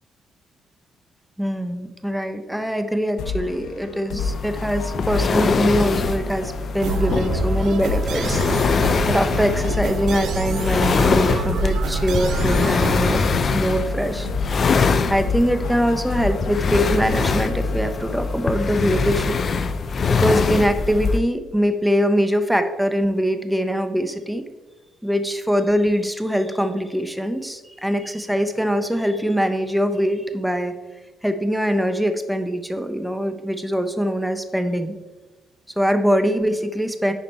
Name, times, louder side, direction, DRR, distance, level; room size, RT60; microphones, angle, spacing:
voice 1, 1.4-8.4 8.7-13.3 13.5-14.3 15.1-19.4 20.1-24.4 25.0-30.7 31.2-35.0 35.8-37.1, equal, 5° right, 9 dB, 0.8 m, -23 dB
sound 1, 3.2-18.6, left 4 dB, 80° left, 0.9 m, -31 dB
sound 2, 4.2-21.2, left 4 dB, 45° left, 0.6 m, -23 dB
sound 3, 6.8-13.4, right 7 dB, 70° right, 0.5 m, -27 dB
9.6 x 5.1 x 4.5 m, 1.2 s
cardioid pair, 90°, 0 cm